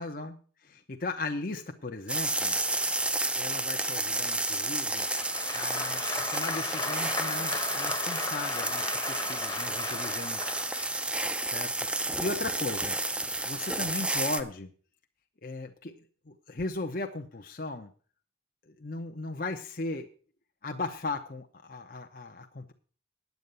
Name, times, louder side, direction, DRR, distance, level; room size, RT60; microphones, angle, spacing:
voice 1, 0.0-2.6 3.4-5.1 5.5-10.6 11.4-14.7 15.4-15.9 16.3-17.9 18.7-20.1 20.6-22.7, left 2 dB, 50° left, 4 dB, 0.9 m, -37 dB
sound 1, 2.1-14.4, right 2 dB, 5° right, 0.5 m, -31 dB
Applause, 5.0-11.0, left 3 dB, 20° left, 1.0 m, -36 dB
9.4 x 8.5 x 6.8 m, 0.41 s
head